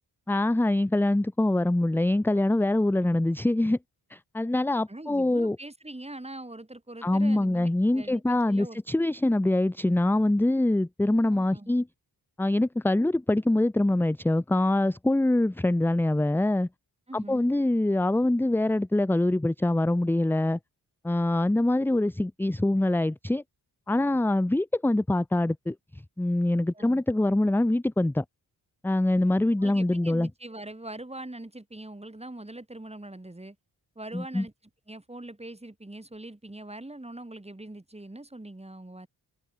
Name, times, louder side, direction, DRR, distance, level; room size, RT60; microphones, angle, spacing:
voice 1, 0.3-3.8 4.1-5.6 7.0-11.9 12.4-16.7 17.1-20.6 21.0-23.4 23.9-25.7 26.2-28.2 28.8-30.3 34.1-34.4, left 1 dB, 5° left, 0.5 m, -24 dB
voice 2, 4.9-8.8 11.3-11.7 17.1-17.5 26.7-27.0 29.6-33.6 34.0-34.5 34.9-39.1, right 1 dB, 15° right, 7.2 m, -42 dB
cardioid pair, 85°, 42 cm